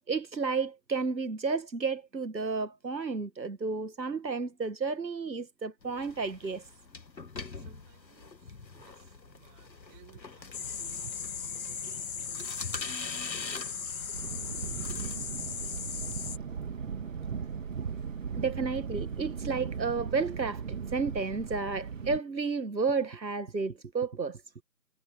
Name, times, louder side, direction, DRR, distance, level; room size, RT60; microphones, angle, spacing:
voice 1, 0.1-6.6 18.4-24.4, right 4 dB, 90° right, 1.6 m, -32 dB
sound 1, 5.8-15.2, left 4 dB, 85° left, 1.9 m, -44 dB
voice 2, 7.5-15.9, right 35 dB, 15° right, 6.1 m, -61 dB
sound 2, 10.5-16.4, left 6 dB, 55° left, 2.2 m, -37 dB
Thunder, 14.1-22.2, right 6 dB, 50° right, 3.0 m, -37 dB
figure-of-eight pair, 150°, 50 cm